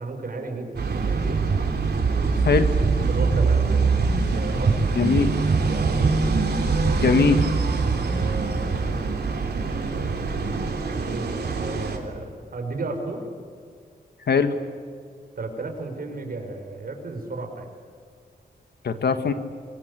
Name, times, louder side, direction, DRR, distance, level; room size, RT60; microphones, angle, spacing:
voice 1, 0.0-1.5 3.1-4.0 4.3-5.1 5.7-6.2 7.9-9.1 10.4-13.3 15.4-17.7, right 3 dB, 65° right, 4 dB, 5.4 m, -34 dB
sound 1, 0.8-12.0, right 4 dB, 85° right, 3.3 m, -23 dB
voice 2, 4.9-5.3 6.9-7.4 14.3-14.5 18.8-19.3, left 5 dB, 90° left, 9 dB, 1.8 m, -20 dB
25.5 x 23.5 x 8.2 m, 2.2 s
wide cardioid pair, 120°, 16 cm